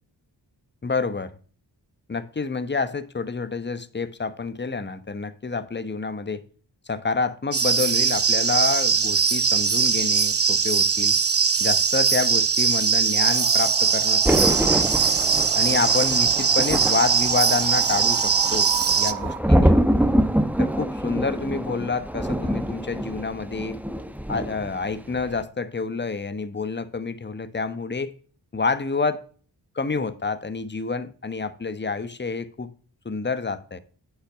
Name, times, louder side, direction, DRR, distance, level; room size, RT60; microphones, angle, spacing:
voice 1, 0.8-1.4 2.1-6.4 6.9-11.2 11.6-14.8 15.5-18.7 19.0-19.8 20.6-23.8 24.3-28.1 28.5-29.2 29.7-32.7 33.0-33.8, left 4 dB, 25° left, 1.0 m, -28 dB
sound 1, 7.5-19.1, right 5 dB, 35° right, 0.9 m, -21 dB
sound 2, 13.2-19.4, right 9 dB, 80° right, 1.1 m, -35 dB
Thunder, 14.2-24.8 25.1-25.4, equal, 5° right, 1.0 m, -25 dB
8.3 x 5.8 x 5.1 m
cardioid pair, 45°, 42 cm